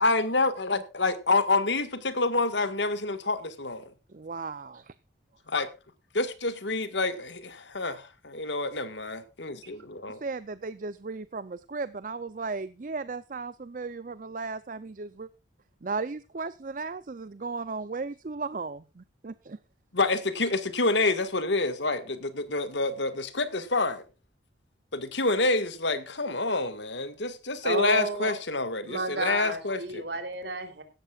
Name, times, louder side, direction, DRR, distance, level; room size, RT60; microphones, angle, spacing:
voice 1, 0.0-3.9 5.5-5.7 6.1-10.2 19.9-24.0 24.9-30.0, left 3 dB, 70° left, 1.7 m, -28 dB
voice 2, 4.1-5.0 10.1-15.3 15.8-19.6, right 4 dB, 45° right, 0.5 m, -36 dB
voice 3, 27.6-28.3 28.9-30.8, right 2 dB, 65° right, 3.3 m, -31 dB
16.5 x 13.5 x 2.4 m
head